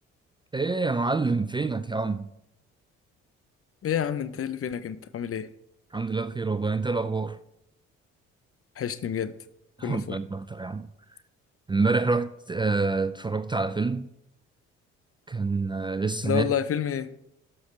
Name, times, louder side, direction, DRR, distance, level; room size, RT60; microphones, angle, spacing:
voice 1, 0.5-2.3 5.9-7.4 9.8-10.9 11.7-14.1 15.3-16.5, right 3 dB, 15° right, 0.4 m, -27 dB
voice 2, 3.8-5.5 8.8-9.3 9.8-10.2 16.2-17.1, left 8 dB, 45° left, 0.7 m, -29 dB
12.5 x 5.8 x 3.2 m
hypercardioid pair, 50°, 33 cm